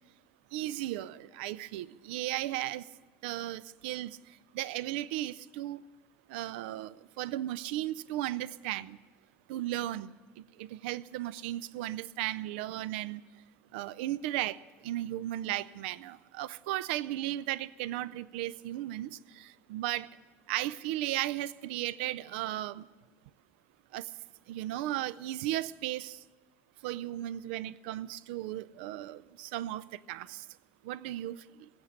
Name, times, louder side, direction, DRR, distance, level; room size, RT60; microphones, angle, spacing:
voice 1, 0.5-2.8 3.2-4.2 4.5-5.8 6.3-9.0 9.5-10.1 10.6-13.2 13.7-14.6 14.8-20.1 20.5-22.8 23.9-24.1 24.5-26.2 26.8-30.4 30.8-31.4, right 14 dB, 85° right, 0.4 m, -35 dB
16.5 x 7.9 x 9.8 m
supercardioid pair, 90°, 6 cm